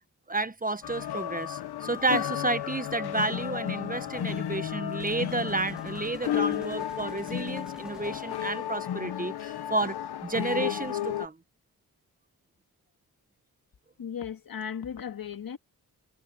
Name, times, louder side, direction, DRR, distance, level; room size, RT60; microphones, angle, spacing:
voice 1, 0.3-9.9 10.2-11.3, right 2 dB, 20° right, 1.3 m, -31 dB
sound 1, 0.8-11.3, left 11 dB, 85° left, 1.2 m, -33 dB
sound 2, 5.0-8.9, equal, ahead, 2.0 m, -51 dB
voice 2, 14.0-15.6, left 8 dB, 65° left, 2.1 m, -36 dB
cardioid pair, 55°, 38 cm